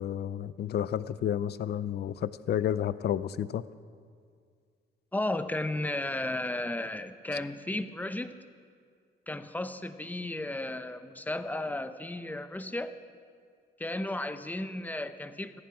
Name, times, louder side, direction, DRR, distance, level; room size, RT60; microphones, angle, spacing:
voice 1, 0.0-3.6, left 10 dB, 55° left, 16 dB, 0.6 m, -31 dB
voice 2, 5.1-8.4 9.3-12.9 13.8-15.6, left 1 dB, 10° left, 10 dB, 0.8 m, -34 dB
16.0 x 14.5 x 4.8 m, 2.1 s
cardioid pair, 90°, 20 cm